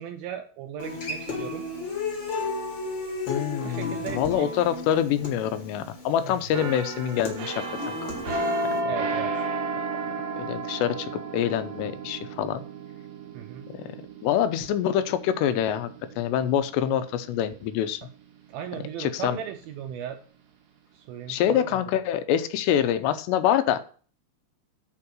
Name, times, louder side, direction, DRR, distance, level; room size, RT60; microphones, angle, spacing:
voice 1, 0.0-1.7 3.6-4.7 6.2-6.4 8.9-9.3 13.3-13.7 18.5-20.2 20.9-21.8, right 9 dB, 80° right, 6 dB, 2.2 m, -37 dB
Human voice / Acoustic guitar, 0.8-8.8, left 3 dB, 40° left, 1.7 m, -34 dB
voice 2, 3.3-8.1 10.4-12.6 13.8-13.9 14.2-15.9 16.2-18.0 19.0-19.4 21.3-23.8, left 10 dB, 90° left, 11 dB, 2.9 m, -25 dB
sound 1, 6.5-18.1 18.5-18.7, right 2 dB, 60° right, 2.8 m, -33 dB
8.7 x 4.6 x 6.3 m, 0.42 s
omnidirectional pair, 4.8 m